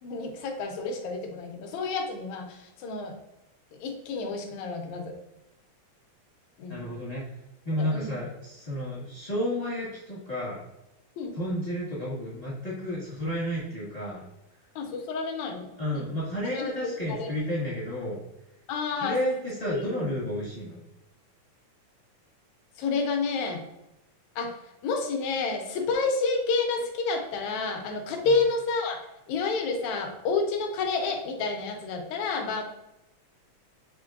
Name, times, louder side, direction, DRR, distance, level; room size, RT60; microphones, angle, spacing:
voice 1, 0.0-3.1 3.8-5.2 6.6-6.8 7.8-8.2 11.2-11.4 14.8-15.7 15.9-16.1 16.5-16.7 17.1-17.5 18.7-19.2 19.7-19.9 22.8-23.6 24.4-24.5 24.8-29.0 29.3-32.6, left 4 dB, 80° left, 4 dB, 2.0 m, -29 dB
voice 2, 6.7-7.2 7.6-10.6 11.3-14.2 15.8-18.2 19.0-20.8, equal, 35° left, -8 dB, 0.6 m, -31 dB
5.9 x 3.2 x 2.5 m, 0.90 s
omnidirectional pair, 3.4 m